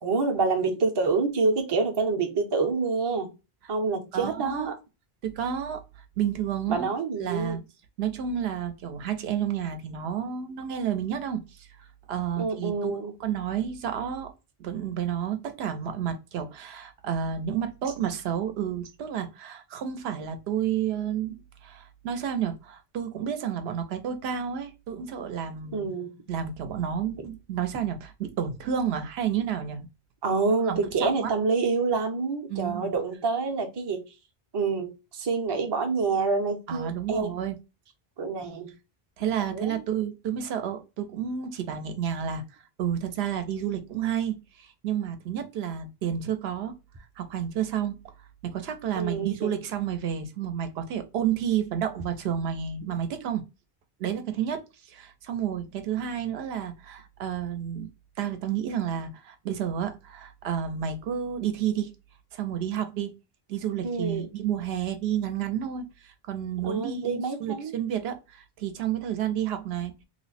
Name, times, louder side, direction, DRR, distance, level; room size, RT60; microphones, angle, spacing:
voice 1, 0.0-3.3 3.7-4.7 6.7-7.6 12.4-13.1 25.7-26.1 27.2-27.3 30.2-34.1 34.5-37.3 38.2-38.7 39.5-39.8 48.9-49.5 63.8-64.3 66.6-67.8, right 4 dB, 35° right, 0.5 m, -27 dB
voice 2, 4.1-4.7 5.2-5.8 6.2-6.9 7.2-7.6 8.0-14.3 14.6-21.4 21.6-25.9 26.3-29.9 30.6-31.3 32.5-32.9 36.7-37.6 39.2-42.4 42.8-46.8 47.2-48.0 48.4-53.4 54.0-54.6 54.9-57.9 58.2-61.9 62.3-63.1 63.5-69.9, right 9 dB, 85° right, 0.8 m, -30 dB
3.1 x 2.0 x 4.0 m
omnidirectional pair, 1.0 m